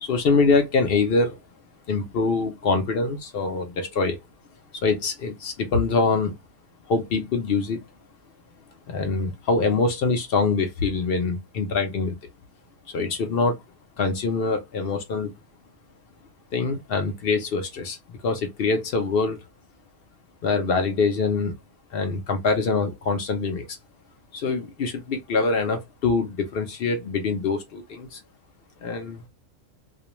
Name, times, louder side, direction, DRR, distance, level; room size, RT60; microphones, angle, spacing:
voice 1, 0.0-1.4 1.9-4.2 4.8-6.3 6.9-7.8 8.9-12.2 12.9-13.6 14.0-15.3 16.5-18.0 18.2-19.4 20.4-21.5 21.9-23.7 24.3-28.2 28.8-29.2, left 4 dB, 60° left, 0.6 m, -24 dB
2.4 x 2.2 x 2.9 m
omnidirectional pair, 1.5 m